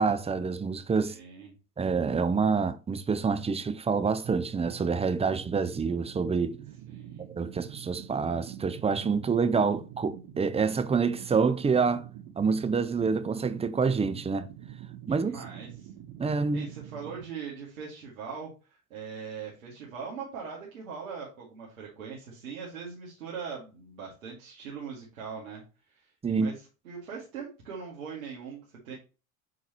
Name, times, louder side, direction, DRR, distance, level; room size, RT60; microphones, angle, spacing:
voice 1, 0.0-1.2 1.8-6.6 7.4-12.0 12.4-14.5 15.1-15.3 16.2-16.7 26.2-26.5, right 5 dB, 15° right, 0.7 m, -27 dB
voice 2, 1.0-1.5 6.9-7.3 15.1-15.9 16.5-28.9, right 6 dB, 80° right, 2.2 m, -41 dB
sound 1, 4.2-17.2, right 11 dB, 50° right, 1.0 m, -45 dB
8.6 x 4.0 x 3.0 m
hypercardioid pair, 75°, 41 cm